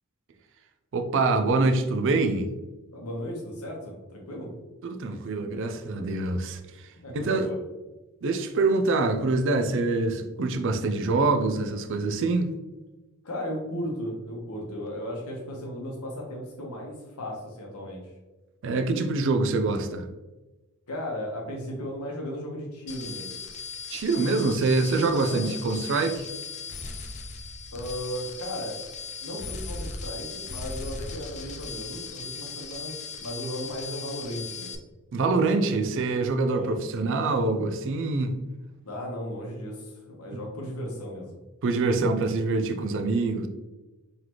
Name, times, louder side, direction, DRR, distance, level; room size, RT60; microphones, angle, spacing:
voice 1, 0.9-2.5 4.8-6.9 7.1-7.5 8.2-12.5 18.6-20.1 23.9-26.3 35.1-38.3 40.3-40.4 41.6-43.5, right 3 dB, 55° right, 7 dB, 0.4 m, -25 dB
voice 2, 2.9-4.5 6.9-7.6 13.2-18.0 20.9-23.4 25.2-25.5 27.7-28.8 29.2-34.8 36.4-36.9 38.8-41.3, equal, 75° left, -1 dB, 1.1 m, -36 dB
sound 1, 22.9-34.7, left 4 dB, 30° left, 0.4 m, -38 dB
3.9 x 3.2 x 2.9 m, 1.1 s
head